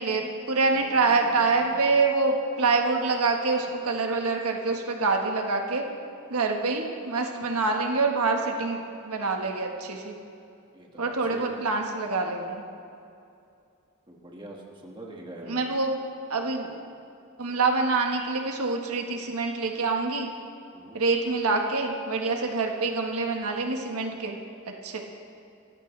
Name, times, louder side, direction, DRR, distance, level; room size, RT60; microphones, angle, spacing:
voice 1, 0.0-5.8 6.3-8.8 9.0-10.1 11.0-12.6 15.5-15.9 16.3-16.8 17.4-20.3 20.9-24.4 24.8-25.0, right 3 dB, 85° right, 2 dB, 1.4 m, -26 dB
voice 2, 0.8-1.8 10.7-11.7 14.1-15.8 20.7-21.0, right 1 dB, 20° right, -1 dB, 1.8 m, -44 dB
25.0 x 14.5 x 3.3 m, 2.5 s
head